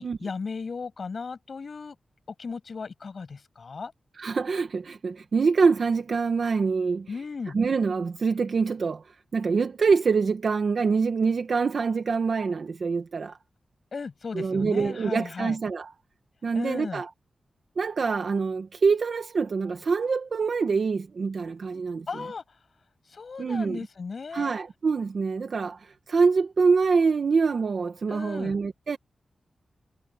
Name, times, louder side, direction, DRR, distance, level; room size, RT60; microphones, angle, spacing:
voice 1, 0.0-2.0 2.4-3.9 7.1-7.6 13.9-15.6 16.5-17.0 22.1-22.4 23.1-24.5 28.1-28.6, left 4 dB, 45° left, 7.1 m, -36 dB
voice 2, 4.2-7.1 7.5-13.4 14.3-15.9 16.4-17.1 17.8-22.1 23.4-23.8 24.3-29.0, right 5 dB, 50° right, 0.9 m, -25 dB
wide cardioid pair, 170°, 0 cm